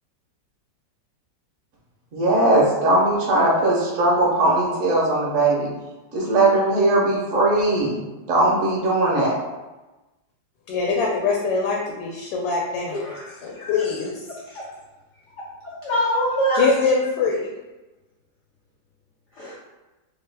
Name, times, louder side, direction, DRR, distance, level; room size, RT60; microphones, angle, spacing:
voice 1, 2.1-5.7 6.1-8.0 8.3-9.3, right 2 dB, 60° right, -5 dB, 0.9 m, -19 dB
voice 2, 10.7-13.0 13.4-14.2 16.5-17.5, left 4 dB, 90° left, -2 dB, 1.3 m, -23 dB
voice 3, 13.0-13.8 14.5-14.6 15.6-16.7 19.3-19.6, equal, 70° left, -7 dB, 0.6 m, -25 dB
3.0 x 2.2 x 3.2 m, 1.1 s
omnidirectional pair, 1.9 m